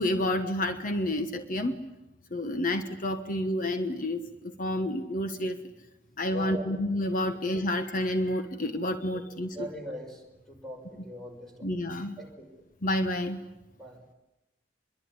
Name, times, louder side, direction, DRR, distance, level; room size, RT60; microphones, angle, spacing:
voice 1, 0.0-1.8 2.3-5.6 6.2-9.6 11.6-12.2 12.8-13.4, left 1 dB, 45° left, 8 dB, 1.2 m, -29 dB
voice 2, 6.3-6.8 9.1-9.2 9.5-12.5 13.8-14.0, equal, ahead, 2 dB, 5.9 m, -42 dB
26.0 x 22.5 x 9.8 m, 0.99 s
head